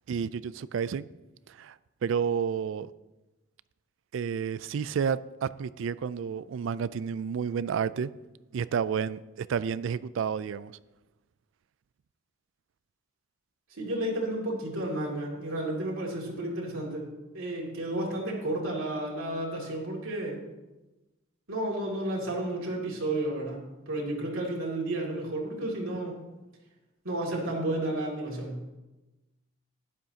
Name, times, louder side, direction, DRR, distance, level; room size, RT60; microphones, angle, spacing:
voice 1, 0.1-1.1 1.5-1.8 2.0-2.9 4.1-8.1 8.5-10.8, right 7 dB, 65° right, 0.3 m, -30 dB
voice 2, 13.8-17.1 17.3-20.4 21.5-23.6 23.9-26.2 27.0-28.7, right 1 dB, 90° right, 2.4 m, -32 dB
12.0 x 10.5 x 2.8 m
head